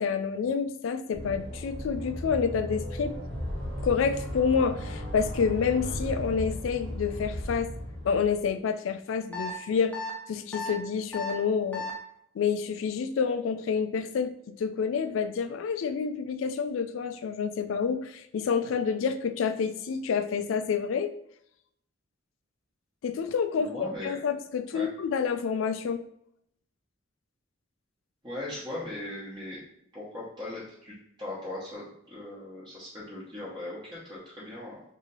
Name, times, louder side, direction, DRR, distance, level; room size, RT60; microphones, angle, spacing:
voice 1, 0.0-3.1 3.8-7.7 8.0-9.9 10.3-11.9 12.4-14.3 14.6-21.1 23.0-26.0, left 6 dB, 80° left, 11 dB, 0.3 m, -28 dB
sound 1, 1.1-8.5, equal, 70° right, 1.3 m, -36 dB
sound 2, 9.3-9.5 9.9-10.1 10.5-10.7 11.1-11.3 11.7-11.9, left 2 dB, 10° left, 0.6 m, -34 dB
voice 2, 23.6-24.2 24.7-24.9 28.2-29.6 29.9-34.8, left 1 dB, 20° right, -9 dB, 0.9 m, -39 dB
2.9 x 2.7 x 3.9 m, 0.74 s
head